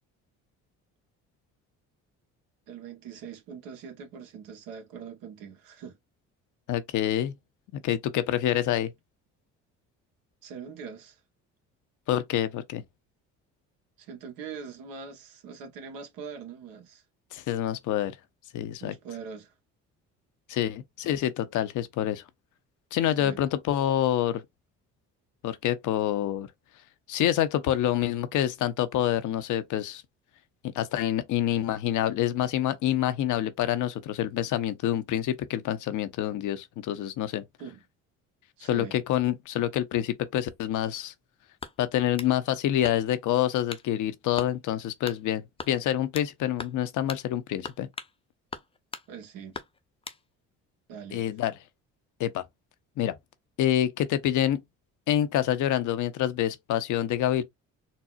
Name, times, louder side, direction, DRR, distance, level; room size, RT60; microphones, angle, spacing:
voice 1, 2.7-6.0 10.4-11.2 14.0-17.0 18.8-19.5 23.2-23.4 37.6-37.8 38.6-39.0 49.1-49.6 50.9-51.2, right 6 dB, 80° right, 1.0 m, -42 dB
voice 2, 6.7-7.3 7.8-8.9 12.1-12.8 17.3-18.1 18.5-18.9 20.5-22.2 22.9-24.4 25.4-26.5 27.1-30.0 30.7-37.4 38.6-41.1 41.8-47.9 51.1-51.5 52.2-52.4 53.0-53.1 53.6-54.6 55.1-57.4, left 11 dB, 60° left, 0.6 m, -27 dB
sound 1, 41.6-42.4 42.8-43.3 43.7-43.9 44.4-44.6 45.1-45.2 45.6-46.3 46.6-46.8 47.1-47.3 47.6-48.2 48.5-49.1 49.5-50.2, left 4 dB, 15° left, 0.5 m, -40 dB
4.1 x 2.0 x 2.3 m
supercardioid pair, 75°, 34 cm